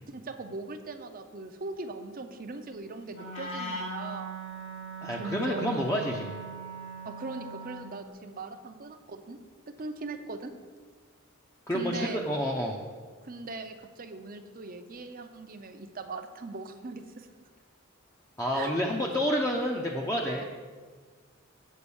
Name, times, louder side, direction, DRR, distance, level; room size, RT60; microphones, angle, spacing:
voice 1, 0.1-4.4 5.1-5.9 7.0-9.4 9.8-10.5 11.7-12.3 13.2-17.5 18.5-18.7 20.4-20.5, right 3 dB, 45° right, 8 dB, 0.7 m, -40 dB
Wind instrument woodwind instrument, 3.1-8.0, right 3 dB, 75° left, 2.5 m, -40 dB
voice 2, 5.0-6.4 11.7-12.8 18.4-20.5, equal, 15° left, -1 dB, 0.7 m, -29 dB
8.4 x 5.3 x 7.0 m, 1.5 s
head